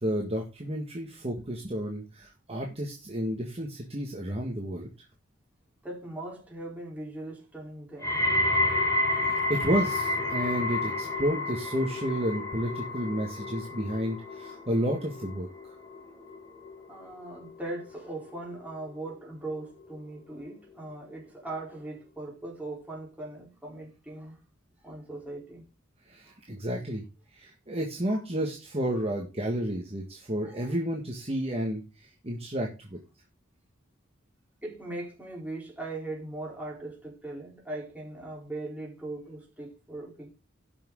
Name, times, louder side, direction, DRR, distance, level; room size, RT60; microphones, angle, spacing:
voice 1, 0.0-4.9 9.1-15.8 26.1-27.0 27.3-33.0, equal, 30° right, 1.8 m, -31 dB
voice 2, 5.8-8.2 16.9-24.4 24.8-25.6 26.2-26.4 28.1-28.2 28.9-29.0 30.4-30.8 34.6-40.3, right 2 dB, 10° right, 4.1 m, -40 dB
sound 1, 8.0-19.1 19.5-20.0 20.7-20.8, left 2 dB, 15° left, 3.1 m, -31 dB
16.0 x 6.2 x 3.8 m
head